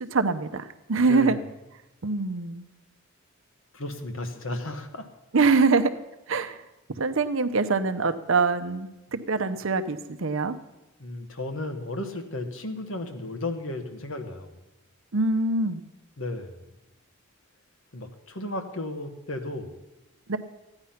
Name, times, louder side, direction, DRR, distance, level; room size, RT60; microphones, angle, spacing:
voice 1, 0.0-1.4 2.0-2.6 5.3-5.9 6.3-6.6 7.0-10.6 15.1-15.8 20.3-20.4, right 4 dB, 65° right, 9 dB, 0.7 m, -24 dB
voice 2, 1.0-1.4 3.7-5.1 11.0-14.5 16.2-16.5 17.9-19.8, left 2 dB, 65° left, 7 dB, 1.4 m, -34 dB
14.5 x 9.7 x 5.8 m, 1.0 s
head